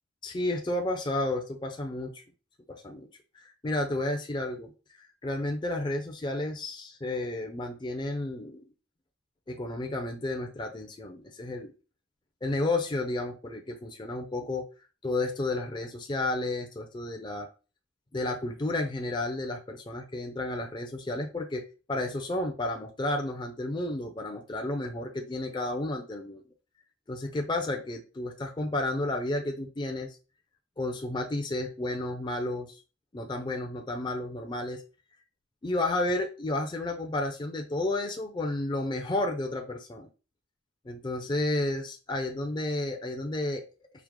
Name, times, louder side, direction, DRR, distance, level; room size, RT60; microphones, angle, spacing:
voice 1, 0.2-2.2 2.7-3.1 3.3-8.6 9.5-11.7 12.4-14.6 15.0-17.5 18.1-21.6 21.9-26.4 27.1-30.2 30.8-32.8 33.1-34.8 35.6-40.1 40.8-43.6, left 2 dB, 20° left, 3 dB, 0.4 m, -32 dB
4.6 x 2.0 x 3.6 m, 0.34 s
head